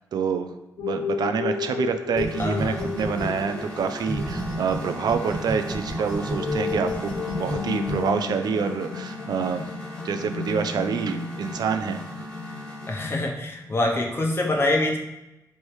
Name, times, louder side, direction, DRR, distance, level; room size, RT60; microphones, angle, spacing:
voice 1, 0.1-0.5 0.8-9.6 10.0-12.0, right 6 dB, 75° right, 8 dB, 0.4 m, -27 dB
sound 1, 0.8-13.9, left 6 dB, 80° left, 0.3 m, -34 dB
sound 2, 2.0-13.1, left 1 dB, 10° left, 1.2 m, -38 dB
sound 3, 2.2-4.7 5.1-7.9, right 2 dB, 55° right, 1.1 m, -32 dB
voice 2, 2.4-2.8 12.9-15.0, left 2 dB, 35° left, 1 dB, 0.8 m, -25 dB
3.3 x 3.0 x 4.4 m, 0.94 s
wide cardioid pair, 110°, 7 cm